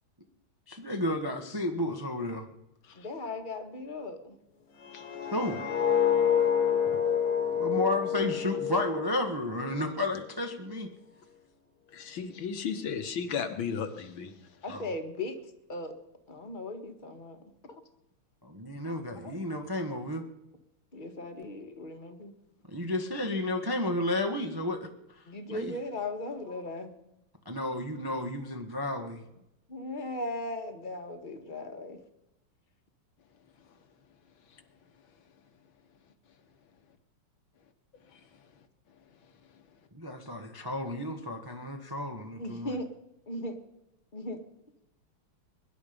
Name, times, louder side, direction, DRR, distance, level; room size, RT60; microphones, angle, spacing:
voice 1, 0.7-2.5 5.3-5.6 7.5-10.9 14.7-14.9 18.5-20.3 22.7-25.7 27.4-29.2 39.9-42.7, left 1 dB, 15° right, 4 dB, 0.8 m, -32 dB
voice 2, 2.9-4.3 14.6-15.4 15.7-16.0 16.3-17.4 18.8-19.4 20.9-22.4 25.3-26.9 29.7-32.0 42.4-42.9 43.3-43.6 44.1-44.4, left 2 dB, 25° left, 6 dB, 1.4 m, -38 dB
sound 1, 4.8-9.9 10.2-10.5, left 8 dB, 85° left, 2.8 m, -28 dB
voice 3, 11.9-14.3, left 6 dB, 65° left, 8 dB, 1.8 m, -34 dB
22.5 x 11.0 x 5.2 m, 0.89 s
omnidirectional pair, 2.4 m